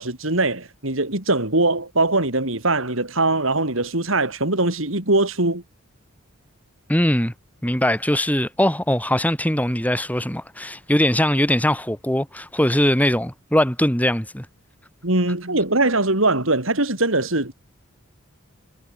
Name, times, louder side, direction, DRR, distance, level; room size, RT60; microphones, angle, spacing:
voice 1, 0.0-5.6 15.0-17.5, right 2 dB, 70° right, 4.4 m, -21 dB
voice 2, 6.9-7.3 7.6-14.5, left 1 dB, 5° left, 4.3 m, -21 dB
head